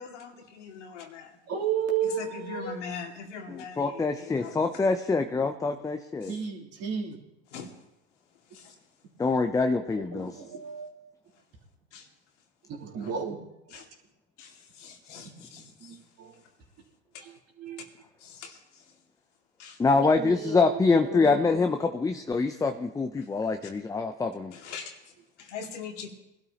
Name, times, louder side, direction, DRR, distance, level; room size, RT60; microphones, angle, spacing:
voice 1, 0.0-1.4 2.0-4.8 6.2-6.3 7.5-7.7 8.5-8.8 10.2-10.3 11.9-12.1 13.0-13.1 13.7-13.9 14.4-16.0 17.1-17.2 18.2-18.9 19.6-19.8 23.2-23.3 24.5-25.1 25.4-26.1, left 6 dB, 85° left, 1 dB, 2.4 m, -42 dB
voice 2, 1.5-2.7 6.3-7.2 10.1-11.1 12.7-13.4 13.7-13.8 15.5-16.3 17.2-17.3 17.6-17.8 19.9-21.7, right 7 dB, 45° right, -2 dB, 3.2 m, -33 dB
voice 3, 3.5-6.3 9.2-10.4 19.8-24.5, left 4 dB, 10° left, 6 dB, 0.6 m, -25 dB
22.5 x 12.0 x 2.9 m, 0.89 s
hypercardioid pair, 100°, 35 cm